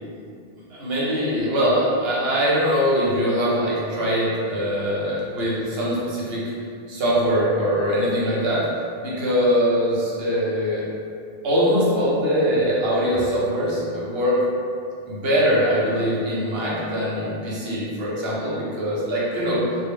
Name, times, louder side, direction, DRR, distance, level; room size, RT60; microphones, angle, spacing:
voice 1, 0.7-6.5 6.9-8.6 9.0-10.8 11.4-14.4 15.1-19.6, equal, 75° right, -7 dB, 0.9 m, -22 dB
2.1 x 2.1 x 3.5 m, 2.4 s
omnidirectional pair, 1.1 m